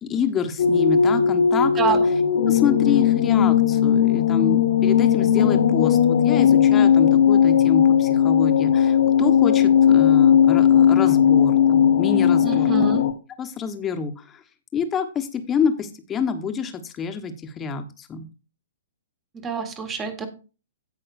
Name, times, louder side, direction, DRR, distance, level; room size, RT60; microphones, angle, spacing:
voice 1, 0.0-2.0 2.5-12.7 13.4-14.4 14.7-18.3, left 6 dB, 20° left, 6 dB, 1.3 m, -27 dB
sound 1, 0.6-13.1, left 8 dB, 55° left, 1.1 m, -17 dB
voice 2, 1.8-2.1 12.4-13.1 19.3-20.3, right 5 dB, 20° right, 8 dB, 1.7 m, -26 dB
16.5 x 5.7 x 2.6 m, 0.33 s
figure-of-eight pair, 115°, 0 cm